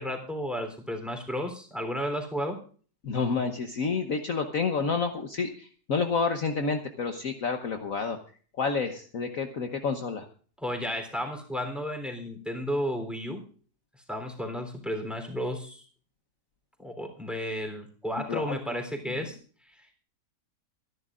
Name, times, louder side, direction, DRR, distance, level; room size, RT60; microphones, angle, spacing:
voice 1, 0.0-2.6 10.6-13.4 14.1-15.8 16.8-19.4 19.6-19.9, equal, ahead, 4 dB, 3.4 m, -33 dB
voice 2, 3.0-8.2 8.6-10.2 18.3-18.8, left 5 dB, 55° left, 6 dB, 1.4 m, -29 dB
25.5 x 11.0 x 2.5 m, 0.42 s
omnidirectional pair, 1.9 m